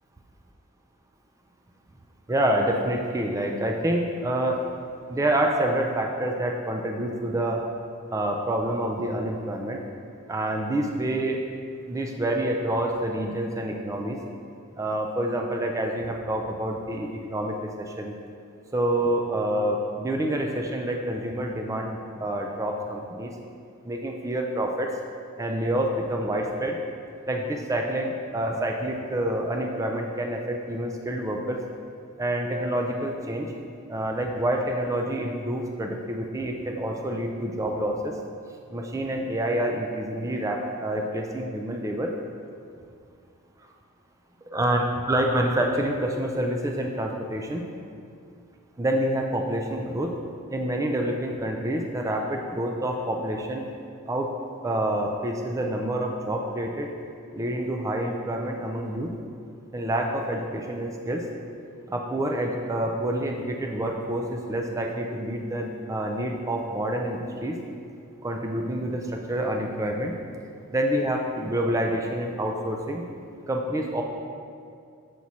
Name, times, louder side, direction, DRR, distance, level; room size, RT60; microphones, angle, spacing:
voice 1, 2.3-4.6 5.1-7.6 8.1-9.8 10.3-11.4 11.9-14.2 14.8-18.1 18.7-23.4 23.8-24.9 25.4-26.8 27.3-31.6 32.2-33.5 33.9-38.1 38.7-42.1 44.5-47.6 48.8-50.2 50.5-53.7 54.1-54.3 54.6-56.9 57.3-59.1 59.7-61.2 61.9-67.6 68.2-70.1 70.7-73.1 73.5-74.0, right 1 dB, 15° right, 2 dB, 0.3 m, -27 dB
6.1 x 5.9 x 2.7 m, 2.4 s
head